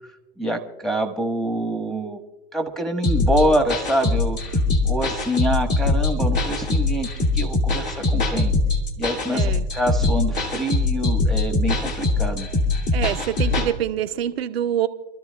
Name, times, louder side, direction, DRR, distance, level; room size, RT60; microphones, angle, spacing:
voice 1, 0.4-2.2 2.5-7.1 7.3-8.5 9.0-12.5, right 1 dB, ahead, 4 dB, 1.3 m, -25 dB
sound 1, 3.0-13.7, left 2 dB, 35° left, 2.4 m, -22 dB
voice 2, 9.3-9.6 12.9-14.9, right 11 dB, 85° right, 8 dB, 0.8 m, -25 dB
27.5 x 13.0 x 2.3 m, 1.1 s
hypercardioid pair, 120°, 30 cm